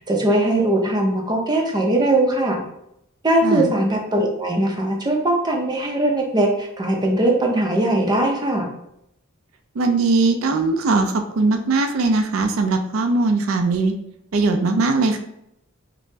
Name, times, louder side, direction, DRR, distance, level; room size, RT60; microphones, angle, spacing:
voice 1, 0.0-2.6 3.2-8.7, right 1 dB, 20° right, 1 dB, 0.5 m, -20 dB
voice 2, 9.8-14.0 14.3-15.2, right 3 dB, 80° right, 5 dB, 0.4 m, -20 dB
5.2 x 2.0 x 2.7 m, 0.79 s
head